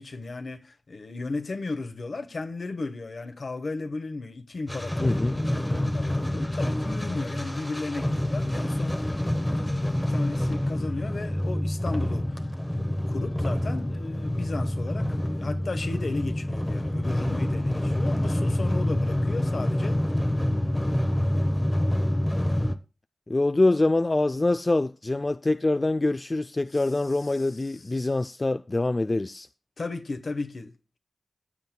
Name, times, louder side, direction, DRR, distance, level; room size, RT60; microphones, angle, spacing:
voice 1, 0.0-12.4 12.7-20.0 26.7-26.8 27.3-28.0 29.8-31.0, left 3 dB, 65° left, 1.0 m, -35 dB
sound 1, 4.7-22.7, left 1 dB, 15° left, 0.8 m, -27 dB
voice 2, 5.0-5.4 23.3-29.5, left 2 dB, 35° left, 0.3 m, -25 dB
14.5 x 7.7 x 2.2 m
cardioid pair, 60°, 0 cm